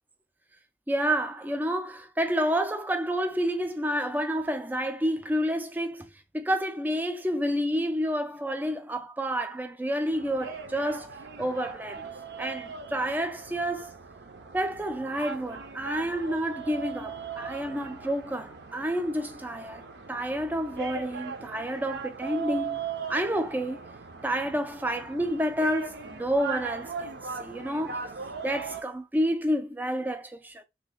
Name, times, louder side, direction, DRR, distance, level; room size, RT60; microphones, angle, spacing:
voice 1, 0.9-6.1 6.3-11.1 11.4-12.1 12.4-14.0 14.5-22.8 23.1-23.9 24.2-28.1 28.4-30.6, equal, 10° right, 0.3 m, -29 dB
sound 1, 10.1-28.8, right 6 dB, 70° right, 0.5 m, -39 dB
3.1 x 2.1 x 3.7 m
head